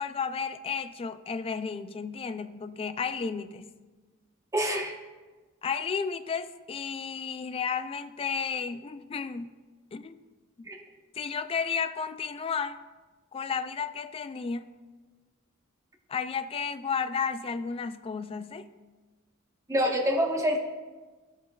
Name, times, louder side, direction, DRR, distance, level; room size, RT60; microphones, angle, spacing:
voice 1, 0.0-3.7 5.6-9.5 9.9-10.2 11.1-12.8 13.3-14.7 16.1-18.7, left 6 dB, 25° left, 11 dB, 0.3 m, -33 dB
voice 2, 4.5-4.9 10.7-10.8 19.7-20.6, equal, 15° right, 1 dB, 1.0 m, -26 dB
14.0 x 6.4 x 2.4 m, 1.3 s
head